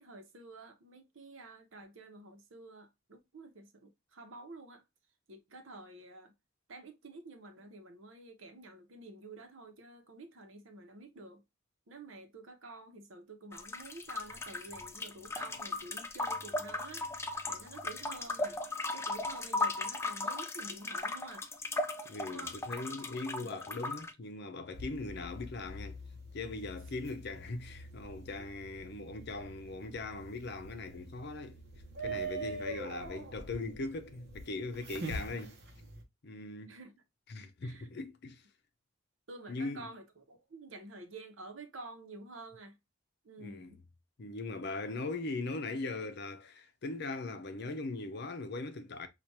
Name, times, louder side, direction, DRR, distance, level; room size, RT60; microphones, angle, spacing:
voice 1, 0.0-4.8 5.3-6.3 6.7-11.4 11.9-17.1 17.5-18.6 18.9-21.5 22.2-22.5 36.7-37.0 37.6-37.9 39.3-42.8 43.2-43.8, right 2 dB, 85° right, 0.9 m, -50 dB
sound 1, 13.5-24.1, left 2 dB, 15° left, 0.3 m, -37 dB
voice 2, 22.1-26.0 26.3-31.6 32.0-35.6 36.2-36.8 37.3-38.4 39.5-39.9 43.4-43.7 44.2-49.1, left 3 dB, 60° left, 0.6 m, -40 dB
sound 2, 24.7-36.0, right 2 dB, 55° right, 0.9 m, -44 dB
4.6 x 2.5 x 2.7 m
head